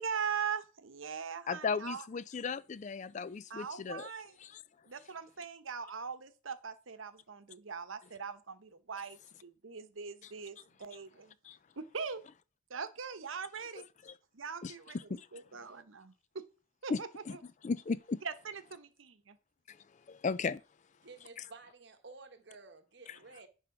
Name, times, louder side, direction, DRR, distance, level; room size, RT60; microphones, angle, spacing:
voice 1, 0.0-2.1 3.5-4.4 4.9-11.3 11.8-12.2 12.7-13.8 14.3-16.5 16.8-17.4 18.2-19.4, right 6 dB, 80° right, 0.9 m, -41 dB
voice 2, 1.5-4.1 11.4-11.6 14.1-14.2 14.6-14.7 15.1-15.3 16.9-17.0 17.3-17.4 17.6-18.2 19.7-19.8 20.1-20.6 23.1-23.2, left 5 dB, 35° left, 0.4 m, -35 dB
voice 3, 21.0-23.5, right 4 dB, 60° right, 1.2 m, -53 dB
10.0 x 3.6 x 5.9 m
head